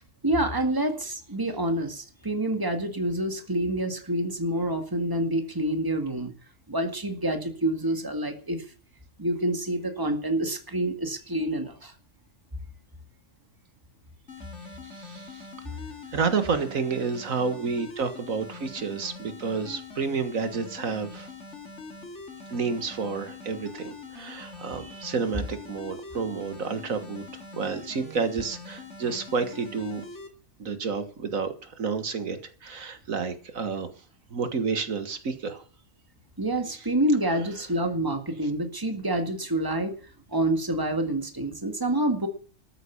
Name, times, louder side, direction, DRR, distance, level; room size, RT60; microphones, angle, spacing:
voice 1, 0.2-6.3 6.7-8.6 9.2-11.9 36.4-39.9 40.3-42.3, right 1 dB, 15° right, 6 dB, 2.0 m, -27 dB
sound 1, 14.3-30.3, left 3 dB, 60° left, 2.7 m, -43 dB
voice 2, 14.9-15.5 16.1-21.3 22.5-27.2 27.5-30.0 30.6-33.9 34.3-35.6, right 5 dB, 85° right, 9 dB, 2.0 m, -30 dB
13.5 x 9.1 x 7.0 m, 0.41 s
omnidirectional pair, 1.4 m